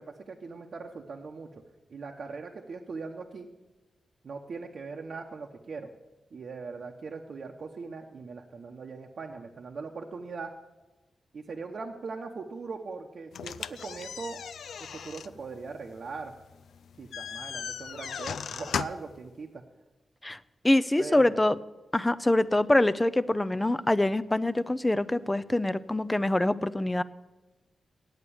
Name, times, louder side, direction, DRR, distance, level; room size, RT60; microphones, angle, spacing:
voice 1, 0.0-1.5 1.9-3.5 4.2-5.9 6.3-10.5 11.3-14.4 14.9-16.4 17.0-19.6 21.0-21.3, right 4 dB, 65° right, 1 dB, 0.8 m, -40 dB
sound 1, 13.3-19.2, left 7 dB, 85° left, 0.3 m, -38 dB
voice 2, 20.6-21.6 21.9-27.0, left 1 dB, 15° left, 15 dB, 0.5 m, -25 dB
8.9 x 8.1 x 8.6 m, 1.1 s
cardioid pair, 70°, 0 cm